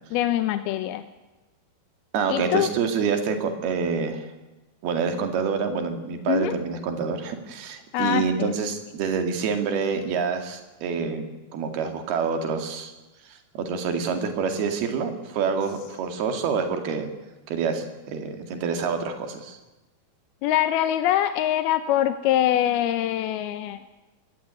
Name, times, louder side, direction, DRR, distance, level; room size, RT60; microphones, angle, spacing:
voice 1, 0.1-1.0 2.3-2.7 6.3-6.5 7.9-8.5 20.4-23.8, left 12 dB, 80° left, 9 dB, 2.8 m, -23 dB
voice 2, 2.1-4.3 4.8-11.3 11.5-12.9 13.3-17.1 17.5-19.6, right 5 dB, 75° right, 6 dB, 4.2 m, -27 dB
23.0 x 18.5 x 9.6 m, 1.1 s
omnidirectional pair, 4.5 m